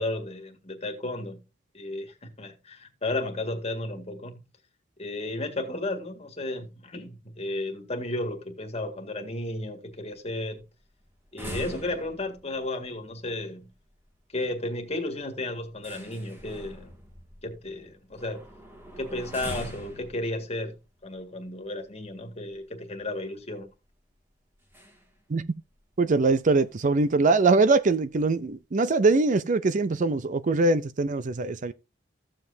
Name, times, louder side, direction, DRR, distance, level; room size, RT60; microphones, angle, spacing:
voice 1, 0.0-1.4 1.7-4.4 5.0-10.6 11.3-13.7 14.3-16.9 17.4-18.5 19.0-23.7, left 2 dB, 35° left, 1.8 m, -33 dB
sound 1, 9.9-22.6 23.0-23.1 23.4-23.6 24.6-25.2 25.5-25.6 25.9-26.0 26.6-26.7 27.0-27.3 27.7-28.4, equal, 10° right, 2.0 m, -44 dB
voice 2, 26.0-31.7, right 3 dB, 45° right, 0.5 m, -22 dB
14.0 x 7.6 x 2.7 m
head